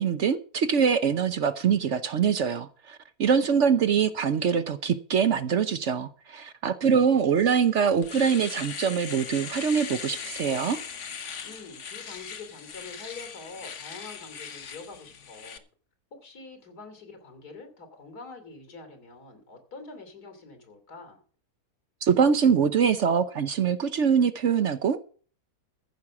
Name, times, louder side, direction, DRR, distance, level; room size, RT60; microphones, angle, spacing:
voice 1, 0.0-10.8 22.0-25.0, right 7 dB, 60° right, 0.9 m, -24 dB
voice 2, 3.3-3.9 11.4-15.6 16.1-21.2, left 3 dB, 80° left, 3.4 m, -45 dB
Domestic sounds home sounds, 7.4-7.5 7.8-15.6, left 7 dB, 55° left, 1.3 m, -39 dB
14.5 x 6.2 x 7.1 m
omnidirectional pair, 1.6 m